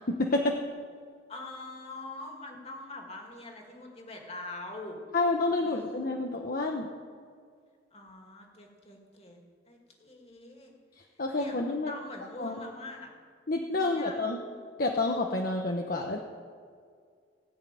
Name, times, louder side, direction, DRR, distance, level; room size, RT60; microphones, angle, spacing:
voice 1, 0.1-0.6 5.1-6.9 11.2-11.9 12.4-12.7 13.5-14.4 14.8-16.2, left 2 dB, 55° left, 2 dB, 0.9 m, -29 dB
voice 2, 1.3-5.0 5.5-6.1 7.9-9.4 9.6-10.7 11.4-13.1 13.7-14.3, left 2 dB, 35° left, 1 dB, 2.4 m, -44 dB
17.5 x 6.4 x 9.2 m, 2.1 s
head